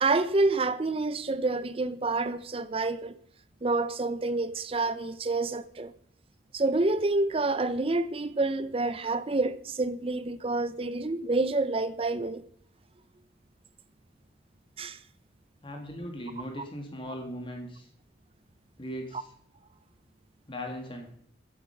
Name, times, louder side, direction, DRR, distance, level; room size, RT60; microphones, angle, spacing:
voice 1, 0.0-3.2 3.6-5.9 6.5-12.4 14.8-15.0, right 3 dB, 30° right, 0.6 m, -28 dB
voice 2, 15.6-17.9 18.8-19.3 20.5-21.1, equal, 25° left, 2.1 m, -38 dB
14.5 x 8.0 x 5.8 m
head